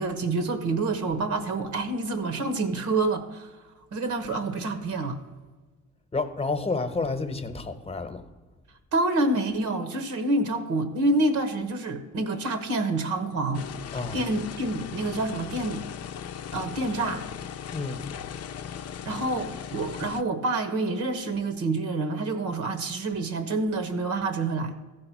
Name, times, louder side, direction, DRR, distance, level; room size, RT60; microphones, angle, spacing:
voice 1, 0.0-3.5 3.9-5.2 8.9-13.6 14.1-15.8 16.5-17.2 19.0-24.7, right 2 dB, 75° right, 1.2 m, -27 dB
voice 2, 6.1-8.2 13.9-14.2 17.7-18.0, left 3 dB, 20° left, 1.0 m, -30 dB
sound 1, 13.5-20.2, left 8 dB, 55° left, 0.6 m, -38 dB
14.5 x 4.9 x 6.1 m
cardioid pair, 90°, 30 cm